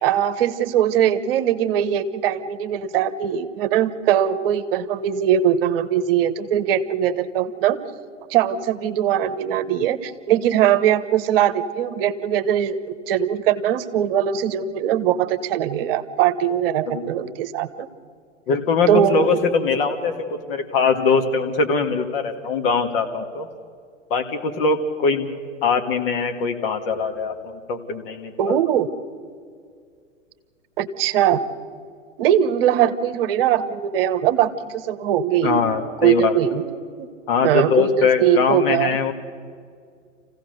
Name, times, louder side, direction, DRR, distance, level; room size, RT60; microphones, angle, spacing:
voice 1, 0.0-7.8 8.3-12.8 13.1-17.9 18.9-19.4 28.4-28.9 30.8-31.4 32.2-35.6 36.0-37.1 37.4-38.9, right 10 dB, 45° right, 13 dB, 1.1 m, -21 dB
voice 2, 18.5-23.5 24.1-25.3 25.6-28.6 35.4-36.3 37.3-39.1, left 5 dB, 45° left, 6 dB, 2.0 m, -22 dB
27.5 x 16.0 x 6.6 m, 2.2 s
figure-of-eight pair, 105°, 38 cm